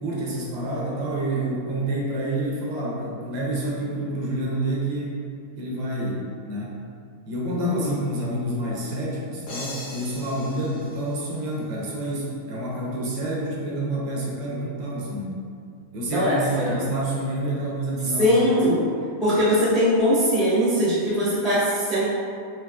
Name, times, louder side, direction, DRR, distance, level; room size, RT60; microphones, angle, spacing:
voice 1, 0.0-5.2 5.6-6.8 7.2-15.4 15.9-18.3 18.7-18.8, right 1 dB, 75° right, -4 dB, 1.4 m, -28 dB
voice 2, 7.5-7.9 16.1-16.7 18.2-18.8 19.2-22.0, equal, ahead, -10 dB, 0.4 m, -21 dB
sound 1, 9.5-12.1, left 1 dB, 60° left, 1.2 m, -40 dB
4.8 x 2.8 x 2.3 m, 2.3 s
omnidirectional pair, 2.2 m